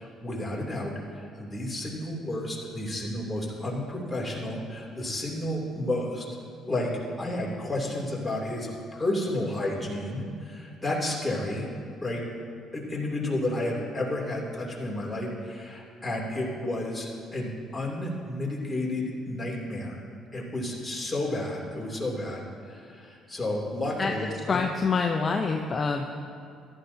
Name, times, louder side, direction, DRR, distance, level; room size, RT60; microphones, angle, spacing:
voice 1, 0.0-6.3 6.7-6.9 7.2-11.7 12.0-12.2 12.7-20.0 20.3-24.6, left 1 dB, 15° left, -4 dB, 3.0 m, -31 dB
voice 2, 24.4-26.1, left 4 dB, 40° left, 2 dB, 0.7 m, -26 dB
14.5 x 11.5 x 2.8 m, 2.4 s
supercardioid pair, 70°, 0 cm